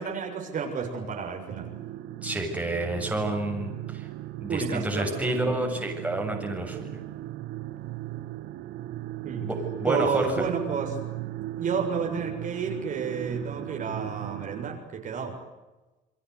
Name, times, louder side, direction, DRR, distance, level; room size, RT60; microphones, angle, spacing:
voice 1, 0.0-1.7 4.5-5.8 9.2-9.5 9.8-11.0 11.6-15.3, right 5 dB, 50° right, 2 dB, 7.1 m, -31 dB
sound 1, 1.5-14.8, right 15 dB, 90° right, 1.3 m, -37 dB
voice 2, 2.2-4.1 4.4-7.0 9.4-10.5, right 1 dB, 10° right, 1 dB, 7.5 m, -30 dB
29.5 x 22.5 x 8.3 m, 1.1 s
cardioid pair, 110°, 17 cm